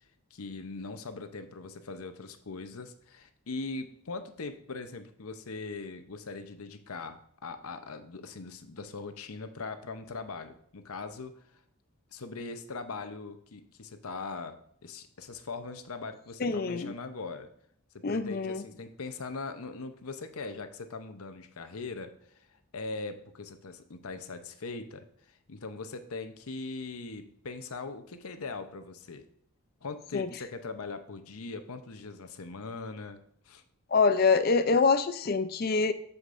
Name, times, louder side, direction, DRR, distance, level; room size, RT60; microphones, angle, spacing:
voice 1, 0.3-11.4 12.1-17.5 17.9-22.5 22.7-29.2 29.8-33.6, left 3 dB, 75° left, 9 dB, 0.8 m, -40 dB
voice 2, 16.4-16.9 18.0-18.6 30.1-30.3 33.9-35.9, left 4 dB, 40° left, 12 dB, 0.5 m, -25 dB
8.0 x 7.2 x 2.6 m, 0.68 s
head